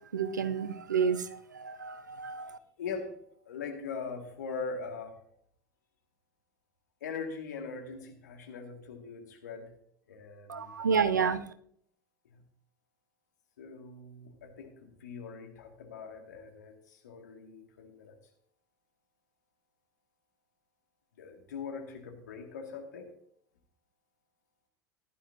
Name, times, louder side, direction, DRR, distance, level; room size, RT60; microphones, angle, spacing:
voice 1, 0.1-1.3 1.5-2.6 10.5-11.5, right 6 dB, 75° right, 0.6 m, -30 dB
voice 2, 2.3-3.2 3.5-5.2 7.0-9.7 10.1-11.0 12.2-12.4 13.6-18.2 21.2-23.1, left 5 dB, 70° left, 2.1 m, -42 dB
15.5 x 11.5 x 2.7 m
figure-of-eight pair, 75°, 10 cm